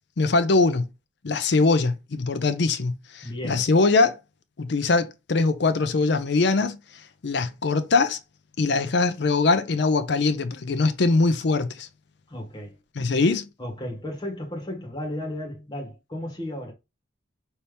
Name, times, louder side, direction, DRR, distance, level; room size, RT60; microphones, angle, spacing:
voice 1, 0.2-0.9 1.2-4.2 4.6-6.8 7.2-8.2 8.6-11.9 13.0-13.5, left 3 dB, 60° left, 0.5 m, -22 dB
voice 2, 3.2-3.7 12.3-12.7 13.6-16.7, left 1 dB, 20° left, 1.5 m, -34 dB
5.5 x 2.8 x 3.3 m
head